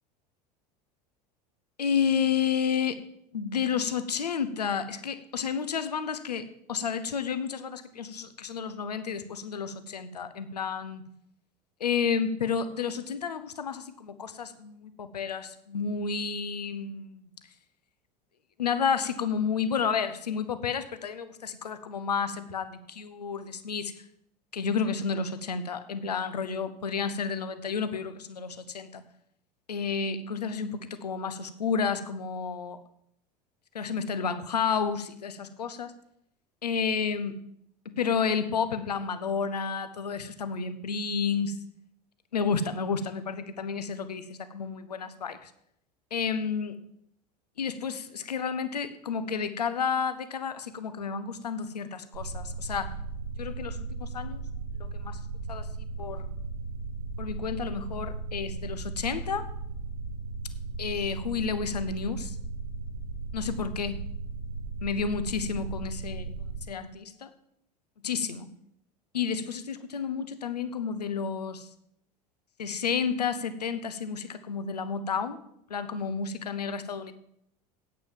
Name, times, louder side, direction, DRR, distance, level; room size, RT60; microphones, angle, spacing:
voice 1, 1.8-3.0 3.3-11.0 11.8-17.3 18.6-23.9 24.5-29.0 29.7-32.8 33.7-35.9 36.6-37.4 37.8-41.6 42.3-45.5 46.1-46.8 47.6-52.9 53.4-54.4 54.8-55.2 55.5-55.7 56.0-56.3 57.2-59.5 60.8-62.4 63.3-64.0 64.8-67.3 68.0-68.5 69.1-71.7 72.6-75.4 75.7-77.1, left 6 dB, 75° left, 12 dB, 0.9 m, -31 dB
sound 1, 52.1-66.6, right 4 dB, 80° right, 3.2 m, -36 dB
8.9 x 8.6 x 7.3 m, 0.73 s
figure-of-eight pair, 80°, 21 cm